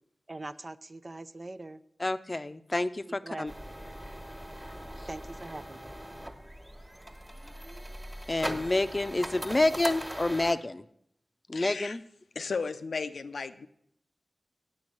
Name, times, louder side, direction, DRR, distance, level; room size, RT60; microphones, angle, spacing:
voice 1, 0.3-1.8 3.1-3.5 5.1-5.9, right 2 dB, 40° right, 11 dB, 0.5 m, -42 dB
voice 2, 2.0-3.5 8.3-10.8 11.5-12.0, left 2 dB, 35° left, 12 dB, 0.6 m, -28 dB
sound 1, 3.5-10.5, equal, 15° right, 1.5 m, -40 dB
voice 3, 11.5-12.0 12.4-13.7, left 4 dB, 85° left, 9 dB, 0.6 m, -35 dB
8.8 x 7.2 x 7.7 m, 0.70 s
cardioid pair, 50°, 0 cm